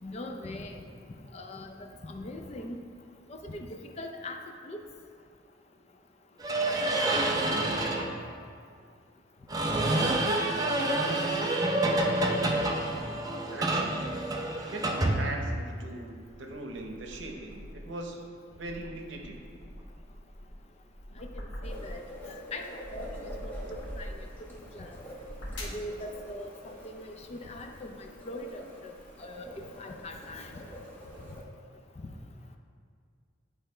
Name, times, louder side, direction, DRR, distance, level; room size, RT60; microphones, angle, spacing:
voice 1, 0.0-0.8 1.3-1.7 2.0-2.8 3.3-4.4 4.6-4.8 21.2-21.3 21.6-22.0 22.5-23.5 24.0-24.1 24.5-24.9 25.6-28.9 29.2-30.6, left 1 dB, 35° left, 4 dB, 0.4 m, -41 dB
sound 1, 6.4-8.1 9.5-15.8, right 1 dB, 20° right, 0.5 m, -28 dB
voice 2, 7.3-7.8 9.9-12.7 13.5-14.1 14.7-18.2 18.5-19.4, right 2 dB, 75° right, 2 dB, 0.8 m, -41 dB
sound 2, 16.1-18.0 18.4-22.2 22.6-24.4 25.0-25.9, equal, 65° left, 1.1 m, -43 dB
sound 3, 21.6-31.4, equal, 10° left, 0.9 m, -47 dB
8.8 x 3.4 x 4.4 m, 2.2 s
head